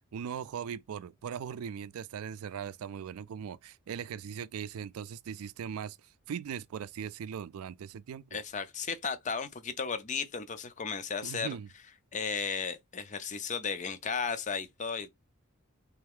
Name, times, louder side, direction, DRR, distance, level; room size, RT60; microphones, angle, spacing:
voice 1, 0.1-8.4 11.2-11.7, right 8 dB, 75° right, 0.3 m, -39 dB
voice 2, 8.3-11.6 12.1-15.1, left 5 dB, 35° left, 0.5 m, -34 dB
3.5 x 3.3 x 3.5 m
head